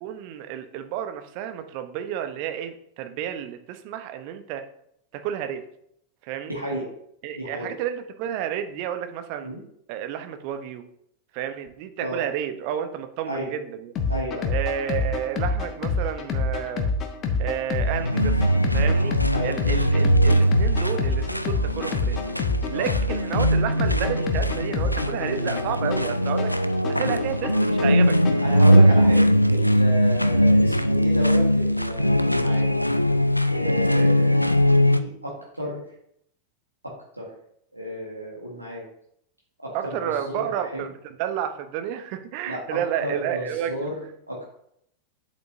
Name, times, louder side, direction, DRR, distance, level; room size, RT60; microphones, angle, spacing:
voice 1, 0.0-4.6 5.1-5.6 6.2-6.5 7.2-9.5 9.9-10.8 11.3-13.9 14.5-16.9 17.4-18.4 18.7-22.2 22.7-26.5 26.9-28.2 30.7-30.9 33.9-34.4 39.7-43.9, right 10 dB, 45° right, 8 dB, 0.8 m, -31 dB
voice 2, 6.5-6.9 7.3-7.7 9.4-9.6 12.0-12.2 13.3-13.5 14.1-14.5 19.3-19.5 22.7-22.9 26.9-27.1 28.4-32.7 33.5-34.5 34.8-35.8 36.8-37.3 37.7-38.9 39.6-40.9 42.4-44.5, equal, 85° right, -3 dB, 1.5 m, -32 dB
sound 1, 14.0-29.0, left 3 dB, 30° left, 1.2 m, -27 dB
sound 2, 17.8-35.0, equal, 90° left, 0.3 m, -21 dB
8.2 x 7.8 x 2.7 m, 0.72 s
figure-of-eight pair, 90°, 0 cm